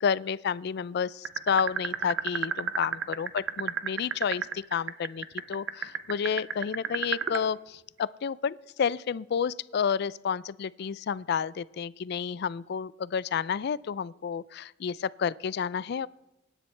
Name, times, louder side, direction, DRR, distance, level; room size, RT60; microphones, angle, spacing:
voice 1, 0.0-16.1, left 7 dB, 60° left, 20 dB, 0.4 m, -30 dB
sound 1, 1.3-7.5, right 7 dB, 85° right, 0.7 m, -29 dB
25.0 x 10.0 x 3.3 m, 0.97 s
head